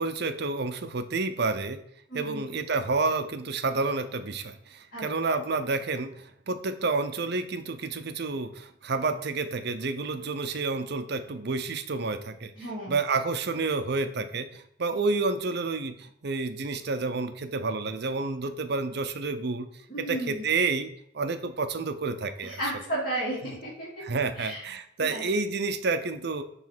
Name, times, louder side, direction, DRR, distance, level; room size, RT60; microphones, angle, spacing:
voice 1, 0.0-1.8 2.1-12.5 12.9-19.7 20.0-20.9 21.1-22.6 23.4-23.6 24.0-26.4, right 3 dB, 60° right, 9 dB, 0.7 m, -29 dB
voice 2, 2.1-2.4 4.9-5.0 12.6-12.9 19.9-20.4 22.4-24.0 24.4-24.6 25.0-25.3, right 1 dB, 50° left, -9 dB, 2.8 m, -33 dB
7.2 x 3.3 x 6.0 m, 0.70 s
head